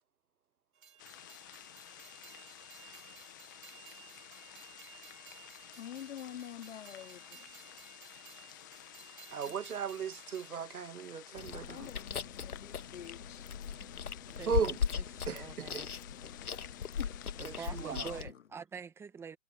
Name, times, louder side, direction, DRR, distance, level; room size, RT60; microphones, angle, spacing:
Train, 0.7-10.5, right 8 dB, 65° right, 3.3 m, -56 dB
sound 1, 1.0-18.2, left 15 dB, 15° left, 0.6 m, -53 dB
voice 1, 5.8-7.5 9.4-9.5 11.5-13.5 17.0-17.1 17.9-18.5, left 10 dB, 55° left, 2.3 m, -47 dB
voice 2, 9.3-11.9 14.5-14.8 15.3-15.8 17.7-18.1, right 7 dB, 90° right, 1.2 m, -36 dB
Chewing mastication, 11.4-18.3, left 6 dB, 85° left, 1.6 m, -38 dB
voice 3, 14.3-15.9 17.4-19.4, right 6 dB, 5° right, 1.0 m, -46 dB
hypercardioid pair, 150°, 43 cm